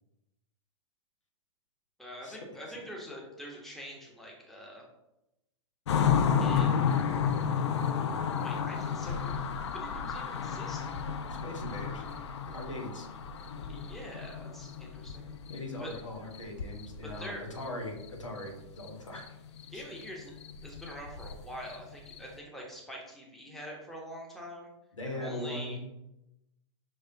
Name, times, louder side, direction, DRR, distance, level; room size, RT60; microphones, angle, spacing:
voice 1, 2.0-4.8 6.4-6.9 8.4-9.4 9.7-10.9 13.7-15.3 15.8-15.9 17.0-17.5 19.7-20.3 20.6-24.7 25.1-25.8, equal, ahead, -3 dB, 1.0 m, -45 dB
sound 1, 5.9-16.0 16.3-17.3 17.6-17.7 18.0-18.9 19.2-19.3 19.6-22.4, left 7 dB, 65° left, 0.5 m, -32 dB
voice 2, 11.3-12.0 12.5-13.1 15.5-19.3 19.7-19.8 25.0-25.8, left 1 dB, 80° left, 1 dB, 1.2 m, -40 dB
5.5 x 3.2 x 2.8 m, 0.90 s
figure-of-eight pair, 110°, 16 cm